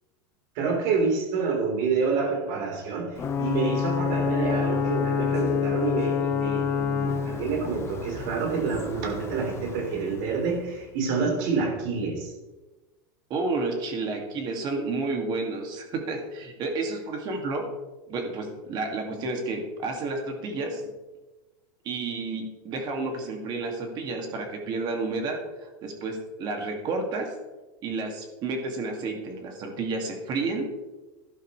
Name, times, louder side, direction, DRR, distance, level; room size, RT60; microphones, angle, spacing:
voice 1, 0.6-12.3, right 4 dB, 60° right, 1 dB, 4.0 m, -28 dB
Ocean / Boat Water vehicle / Alarm, 3.2-10.7, left 7 dB, 25° left, 1.0 m, -28 dB
voice 2, 13.3-17.6 18.1-20.8 21.8-27.3 27.8-30.7, right 3 dB, 40° right, 3 dB, 2.2 m, -31 dB
12.5 x 11.5 x 3.3 m, 1.1 s
supercardioid pair, 145°, 12 cm